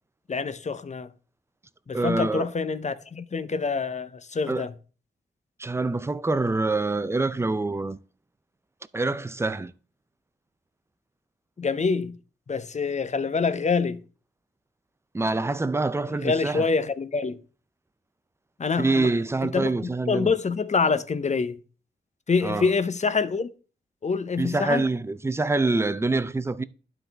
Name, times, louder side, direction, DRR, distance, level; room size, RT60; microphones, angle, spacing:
voice 1, 0.3-1.1 1.9-4.7 11.6-12.2 12.5-14.0 16.1-17.4 18.6-19.1 19.4-21.6 22.3-23.5 24.0-24.9, left 4 dB, 40° left, 0.6 m, -26 dB
voice 2, 1.9-2.5 4.5-4.7 5.6-8.0 8.9-9.7 15.1-16.6 18.8-20.3 22.4-22.7 24.4-26.6, right 3 dB, 15° right, 0.4 m, -25 dB
11.5 x 4.0 x 3.4 m
cardioid pair, 70°, 19 cm